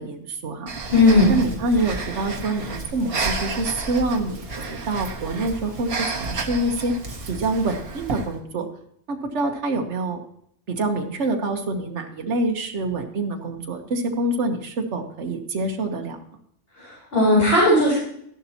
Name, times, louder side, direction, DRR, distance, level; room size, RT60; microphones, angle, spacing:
voice 1, 0.0-0.7 1.3-5.9 6.2-6.9 7.3-8.7 9.1-10.2 10.7-16.2, right 2 dB, 70° right, 4 dB, 1.5 m, -26 dB
Breathing, 0.7-8.3, right 3 dB, 55° right, 1.6 m, -31 dB
voice 2, 0.9-1.3 16.7-17.9, left 2 dB, 50° left, -7 dB, 4.6 m, -17 dB
13.5 x 11.0 x 2.9 m, 0.70 s
omnidirectional pair, 1.3 m